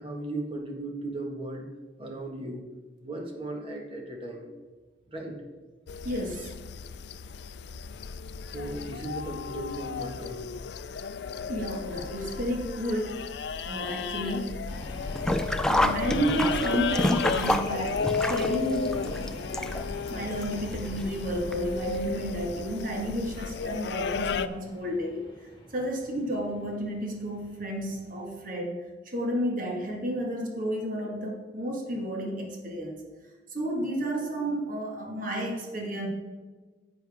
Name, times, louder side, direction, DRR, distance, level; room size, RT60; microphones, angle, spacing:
voice 1, 0.0-1.7 2.0-2.6 3.0-4.5 5.1-5.3 8.5-10.5, right 2 dB, 30° right, 1 dB, 1.6 m, -36 dB
sound 1, 5.9-24.5, left 5 dB, 65° left, 0.4 m, -34 dB
voice 2, 6.0-6.5 11.5-13.3 13.6-14.7 15.4-25.2 25.7-33.0 33.5-36.1, equal, 50° right, 0 dB, 1.7 m, -32 dB
sound 2, 14.6-28.3, left 1 dB, 30° left, 1.7 m, -45 dB
Sink (filling or washing), 15.1-20.1 20.4-20.5 21.5-21.6 21.9-22.0, left 1 dB, 5° left, 0.4 m, -27 dB
10.5 x 8.7 x 3.6 m, 1.3 s
head